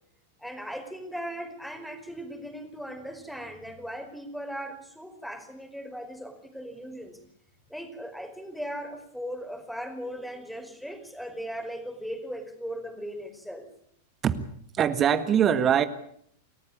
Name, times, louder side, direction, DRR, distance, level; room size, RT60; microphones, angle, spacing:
voice 1, 0.4-7.2 7.7-13.7, equal, ahead, 6 dB, 4.9 m, -38 dB
voice 2, 14.7-15.8, right 9 dB, 30° right, 12 dB, 1.8 m, -22 dB
29.5 x 14.0 x 8.7 m, 0.68 s
figure-of-eight pair, 95°, 0 cm